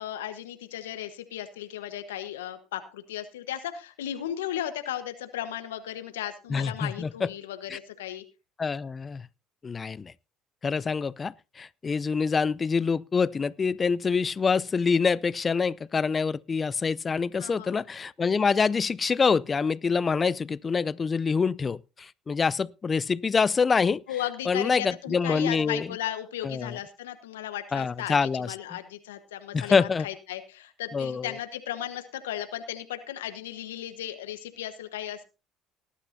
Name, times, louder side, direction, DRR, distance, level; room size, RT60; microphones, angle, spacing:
voice 1, 0.0-8.2 17.4-17.8 24.1-35.2, left 11 dB, 85° left, 1.2 m, -36 dB
voice 2, 6.5-7.3 7.7-7.8 8.6-9.3 9.6-10.1 10.6-24.0 24.5-25.9 26.4-26.8 27.7-28.5 29.5-30.1 30.9-31.3, left 5 dB, 30° left, 0.5 m, -26 dB
19.0 x 11.5 x 2.7 m
hypercardioid pair, 65°, 0 cm